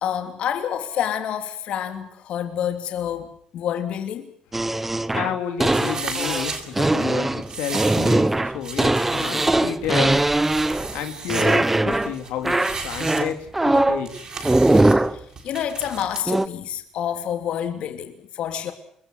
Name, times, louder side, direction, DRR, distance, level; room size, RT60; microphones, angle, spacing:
voice 1, 0.0-4.3 15.1-18.7, left 9 dB, 60° left, 3.1 m, -28 dB
sound 1, 4.5-11.0 11.3-12.1 12.4-14.0 14.4-15.2 16.3-16.5, right 2 dB, 10° right, 1.0 m, -20 dB
voice 2, 4.8-10.3 10.9-12.6 12.8-14.3, left 9 dB, 85° left, 3.3 m, -31 dB
sound 2, 5.6-16.2, right 4 dB, 35° right, 7.3 m, -35 dB
27.0 x 22.0 x 6.4 m
cardioid pair, 120°, 2 cm